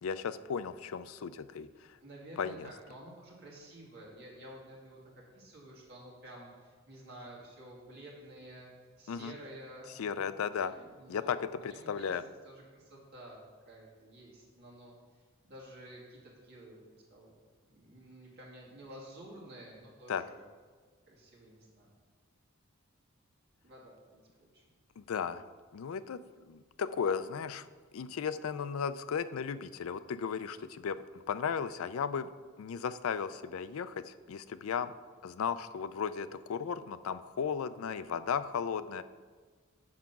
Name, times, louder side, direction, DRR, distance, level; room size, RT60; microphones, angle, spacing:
voice 1, 0.0-1.9 2.4-2.7 9.1-9.3 10.0-10.7 11.1-11.4 11.6-12.2 20.1-20.2 25.0-25.4 25.7-26.2 26.5-27.7 27.9-32.3 32.6-34.9 35.2-39.0, left 6 dB, 80° left, 13 dB, 0.4 m, -35 dB
voice 2, 2.0-8.7 9.0-10.0 10.6-12.2 12.4-17.3 17.7-20.5 21.1-21.9 23.6-24.6, right 1 dB, 50° right, -4 dB, 2.4 m, -51 dB
7.3 x 5.7 x 6.0 m, 1.5 s
head